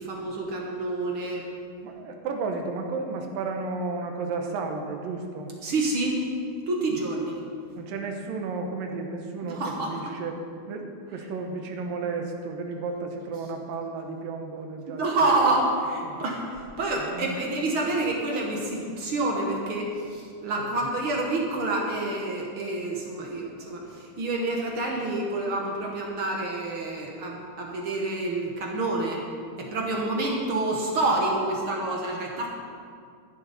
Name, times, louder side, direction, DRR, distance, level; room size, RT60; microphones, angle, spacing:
voice 1, 0.0-1.5 5.6-6.2 6.7-7.4 9.4-10.0 11.2-11.3 14.9-29.2 29.6-32.5, right 2 dB, 55° right, -1 dB, 1.5 m, -28 dB
voice 2, 1.8-5.5 7.8-10.4 10.7-15.2 16.0-16.2 17.0-17.4, right 4 dB, 85° right, 3 dB, 2.8 m, -33 dB
14.0 x 11.0 x 4.2 m, 2.3 s
omnidirectional pair, 3.9 m